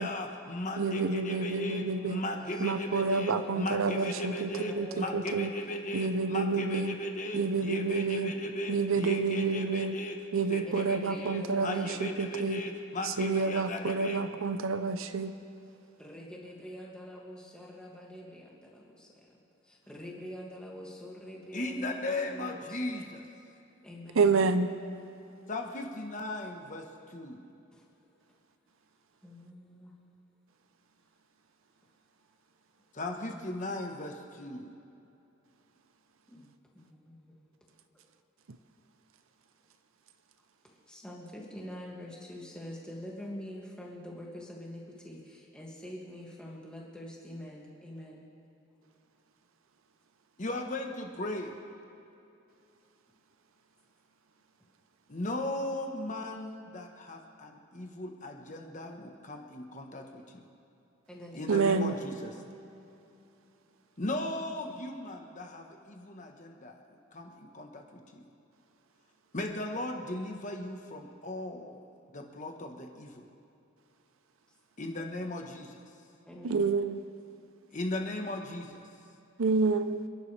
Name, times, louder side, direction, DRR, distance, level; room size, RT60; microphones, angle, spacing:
voice 1, 0.0-10.2 10.5-14.2 21.5-23.2 25.5-27.4 32.9-34.7 50.4-51.5 55.1-60.4 61.3-62.3 64.0-66.8 67.1-68.2 69.3-71.8 72.1-73.3 74.8-75.8 77.7-78.8, left 1 dB, 40° left, 3 dB, 1.2 m, -37 dB
voice 2, 0.8-2.2 2.6-4.5 4.8-5.5 5.9-7.0 7.3-8.3 8.7-10.0 10.3-12.6 13.0-15.3 24.2-24.7 61.5-61.9 76.4-77.0 79.4-80.0, right 4 dB, 80° right, 10 dB, 0.7 m, -29 dB
voice 3, 1.3-5.4 10.5-12.1 16.0-19.4 19.6-23.1 23.8-24.4 27.7-27.8 29.2-29.9 33.2-33.4 36.3-37.4 40.6-48.3 61.1-62.1 76.3-76.6, equal, 5° left, -4 dB, 2.2 m, -46 dB
27.5 x 11.0 x 3.4 m, 2.8 s
head